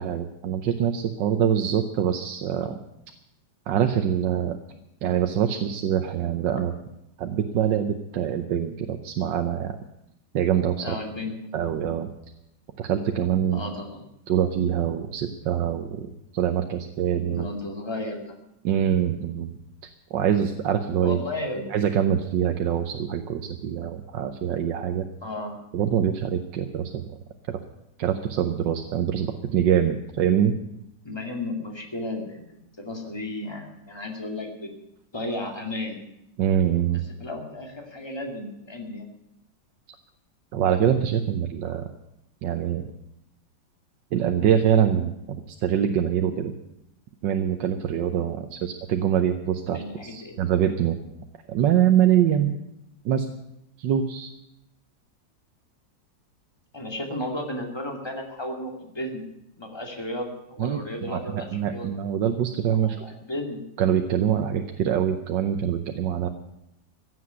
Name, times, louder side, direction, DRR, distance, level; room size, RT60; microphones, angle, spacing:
voice 1, 0.0-2.8 3.7-4.6 5.0-6.7 7.2-9.8 10.3-11.0 11.5-12.1 12.8-13.6 14.3-17.5 18.6-19.6 20.1-21.2 21.7-25.0 25.7-27.2 28.0-30.5 36.4-37.0 40.5-41.9 42.4-42.8 44.1-46.5 47.2-51.0 51.5-52.6 53.0-53.3 53.8-54.3 60.6-60.8 61.1-61.2 61.5-63.0 63.8-66.3, right 9 dB, 75° right, 6 dB, 1.5 m, -24 dB
voice 2, 10.8-11.5 13.5-14.0 17.3-18.3 21.0-21.7 25.2-25.6 31.0-34.7 35.1-36.0 37.2-39.1 49.7-50.4 56.7-59.2 59.6-61.9 62.7-63.6, left 1 dB, 15° left, 2 dB, 2.4 m, -34 dB
15.5 x 7.8 x 9.4 m, 0.84 s
omnidirectional pair, 2.0 m